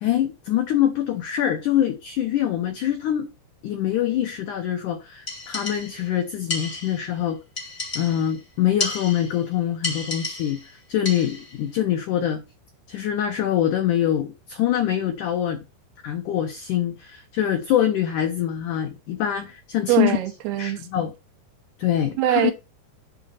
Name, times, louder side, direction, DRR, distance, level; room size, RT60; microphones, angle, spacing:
voice 1, 0.0-3.3 3.6-7.4 8.0-10.6 10.9-12.4 12.9-15.6 16.0-20.2 20.6-21.1 21.8-22.5, left 11 dB, 85° left, 1.8 m, -24 dB
sound 1, 5.3-6.1 6.5-7.1 7.6-8.4 8.8-9.5 9.8-10.7 11.1-11.6, left 2 dB, 20° left, 2.2 m, -32 dB
voice 2, 19.9-20.9 22.2-22.5, right 13 dB, 75° right, 2.9 m, -22 dB
8.7 x 4.0 x 7.1 m
omnidirectional pair, 4.7 m